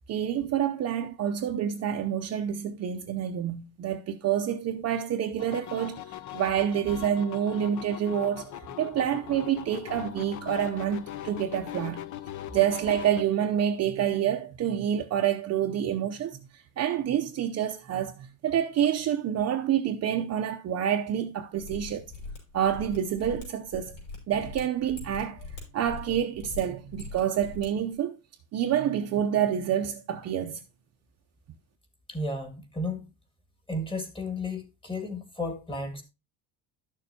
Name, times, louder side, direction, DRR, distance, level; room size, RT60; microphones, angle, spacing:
voice 1, 0.1-12.0 12.5-22.0 22.5-24.0 24.3-25.5 25.7-28.2 28.5-30.6, right 9 dB, 35° right, 0.6 m, -28 dB
sound 1, 5.4-13.2, left 12 dB, 45° left, 0.6 m, -40 dB
Mechanisms, 21.6-27.7 27.9-28.0, left 3 dB, 80° left, 5.4 m, -42 dB
voice 2, 32.1-33.1 33.7-36.0, left 2 dB, 10° left, 1.8 m, -33 dB
12.0 x 6.7 x 2.8 m
cardioid pair, 140°, 43 cm